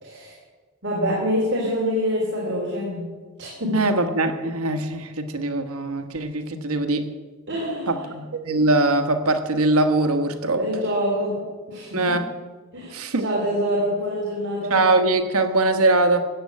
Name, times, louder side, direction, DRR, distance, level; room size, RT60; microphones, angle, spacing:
voice 1, 0.0-0.3 0.8-3.1 3.4-3.9 7.5-8.1 10.4-12.2 12.7-14.9, equal, 55° right, -4 dB, 3.5 m, -26 dB
voice 2, 3.7-7.0 7.9-10.6 11.9-12.3 12.9-13.2 14.7-16.2, right 2 dB, 85° right, 7 dB, 1.3 m, -21 dB
15.0 x 7.7 x 8.5 m, 1.4 s
head